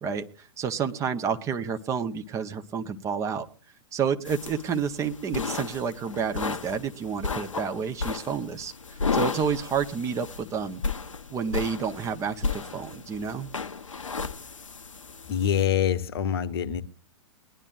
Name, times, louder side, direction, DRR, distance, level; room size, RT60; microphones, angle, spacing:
voice 1, 0.0-3.5 3.9-8.7 9.1-10.8 11.3-13.5, right 6 dB, 20° right, 0.8 m, -29 dB
sound 1, 4.2-15.7, left 4 dB, 75° left, 0.8 m, -34 dB
voice 2, 15.3-16.8, left 9 dB, 50° left, 1.0 m, -25 dB
21.5 x 11.0 x 2.4 m
figure-of-eight pair, 110°, 16 cm